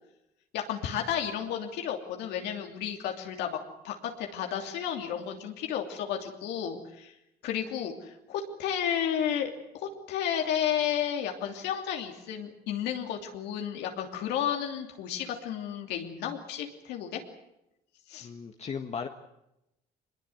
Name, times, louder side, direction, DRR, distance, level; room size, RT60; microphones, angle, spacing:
voice 1, 0.5-3.6 3.8-7.1 7.4-17.2 18.1-18.3, left 9 dB, 85° left, 3 dB, 3.0 m, -32 dB
voice 2, 18.2-19.1, left 6 dB, 40° left, 5 dB, 1.6 m, -36 dB
23.5 x 21.5 x 8.0 m, 0.86 s
cardioid pair, 110°, 17 cm